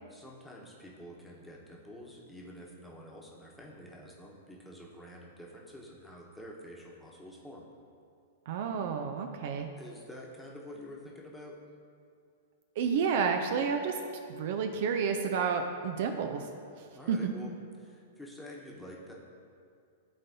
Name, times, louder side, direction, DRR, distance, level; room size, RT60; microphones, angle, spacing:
voice 1, 0.1-7.7 9.8-11.6 16.9-17.5 17.8-19.1, equal, 5° left, -3 dB, 1.1 m, -48 dB
voice 2, 8.5-9.7 12.8-14.0 14.3-16.5 16.8-17.3, right 6 dB, 55° right, 5 dB, 0.4 m, -30 dB
11.5 x 4.0 x 2.8 m, 2.3 s
figure-of-eight pair, 105°, 0 cm